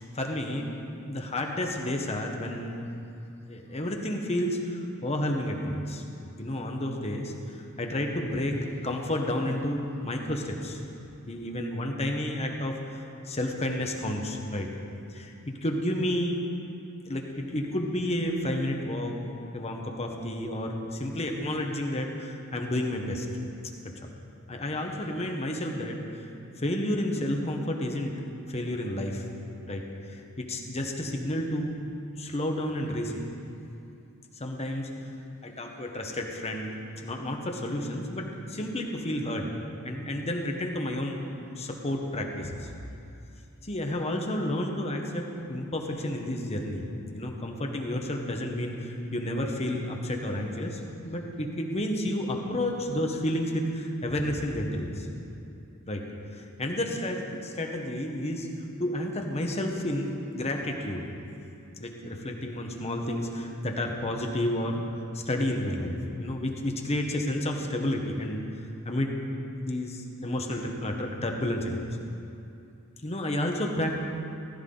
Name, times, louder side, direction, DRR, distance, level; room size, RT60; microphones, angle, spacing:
voice 1, 0.0-2.9 3.4-6.0 6.4-10.8 11.3-14.7 15.1-16.4 17.1-19.2 19.5-23.3 24.0-24.1 24.5-26.0 26.6-28.1 28.5-29.2 29.7-29.8 30.1-31.8 32.1-33.2 34.4-34.9 35.4-39.5 39.8-41.2 41.6-42.7 43.6-55.1 55.9-56.0 56.3-58.5 58.8-61.0 61.8-64.8 65.1-68.4 68.8-69.2 69.6-71.9 73.0-74.0, left 1 dB, 30° left, 2 dB, 1.2 m, -31 dB
15.0 x 12.5 x 3.9 m, 2.6 s
head